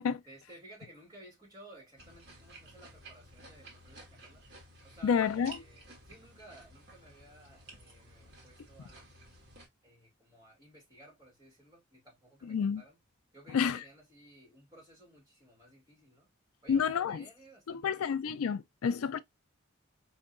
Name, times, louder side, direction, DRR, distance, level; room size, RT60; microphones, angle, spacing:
voice 1, 0.3-4.4 4.8-9.1 9.8-13.0 13.3-16.3 16.6-18.1, right 1 dB, 15° right, 2.3 m, -56 dB
sound 1, 2.0-9.7, right 2 dB, 50° right, 1.5 m, -54 dB
voice 2, 5.0-5.6 12.5-12.8 13.5-13.8 16.7-17.2 17.7-19.2, left 7 dB, 85° left, 0.4 m, -29 dB
4.4 x 2.8 x 2.4 m
head